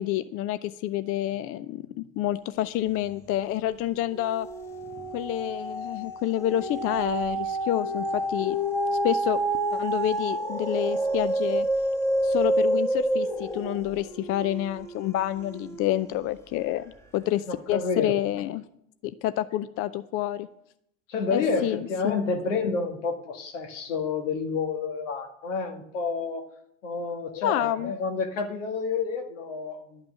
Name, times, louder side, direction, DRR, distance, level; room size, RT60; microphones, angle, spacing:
voice 1, 0.0-4.5 5.1-8.6 8.9-9.4 9.7-11.7 12.2-16.8 17.1-18.6 19.0-20.5 21.3-22.2 27.4-27.9, left 13 dB, 35° left, 14 dB, 0.5 m, -28 dB
sound 1, 3.0-3.5 3.9-16.4 16.9-17.0, right 1 dB, 5° left, 1.6 m, -29 dB
voice 2, 17.5-18.1 21.1-26.5 26.8-30.1, left 4 dB, 70° left, 5 dB, 1.9 m, -29 dB
12.0 x 6.0 x 8.7 m, 0.75 s
figure-of-eight pair, 75°, 38 cm